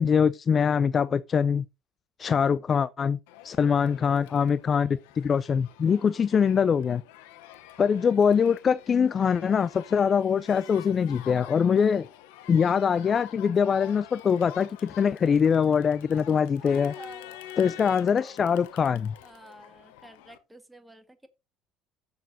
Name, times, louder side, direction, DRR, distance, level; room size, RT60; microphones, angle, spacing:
voice 1, 0.0-1.6 2.2-3.2 3.4-7.0 7.8-12.1 12.5-16.9 17.6-19.1, left 7 dB, 40° left, 0.4 m, -23 dB
Crowd, 3.3-20.4, left 12 dB, 85° left, 0.9 m, -47 dB
voice 2, 3.6-3.9 5.9-6.2 16.6-17.4 17.8-18.6 19.2-21.3, right 1 dB, 10° right, 1.7 m, -50 dB
16.0 x 7.0 x 2.7 m
supercardioid pair, 85°, 0 cm